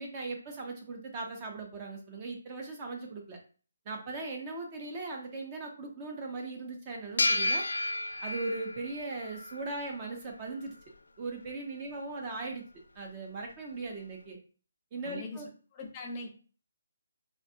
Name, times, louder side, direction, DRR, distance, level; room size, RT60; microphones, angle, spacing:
voice 1, 0.0-3.4 3.9-7.7 8.2-10.7 11.2-12.6 13.0-14.4 14.9-15.5, right 3 dB, 25° right, 1 dB, 0.5 m, -39 dB
sound 1, 7.2-10.1, left 2 dB, 80° left, 0.4 m, -32 dB
voice 2, 15.0-16.3, left 3 dB, 20° left, 1 dB, 0.6 m, -42 dB
3.4 x 2.1 x 2.6 m, 0.40 s
hypercardioid pair, 165°, 0 cm